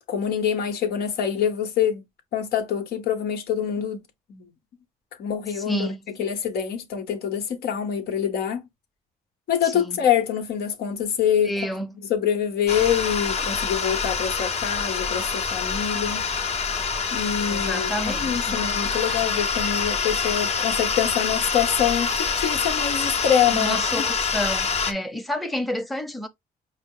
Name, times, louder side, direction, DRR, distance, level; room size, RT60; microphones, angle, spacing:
voice 1, 0.1-2.0 2.3-4.0 4.3-4.5 5.2-5.9 6.2-8.6 9.5-11.5 12.1-16.3 17.1-24.0, left 9 dB, 85° left, 1.1 m, -25 dB
voice 2, 5.6-6.0 9.6-10.0 11.4-12.0 17.5-18.6 23.5-26.3, equal, ahead, 0.6 m, -30 dB
sound 1, 12.7-24.9, left 5 dB, 45° left, 0.7 m, -26 dB
5.1 x 2.0 x 3.7 m
cardioid pair, 95°, 16 cm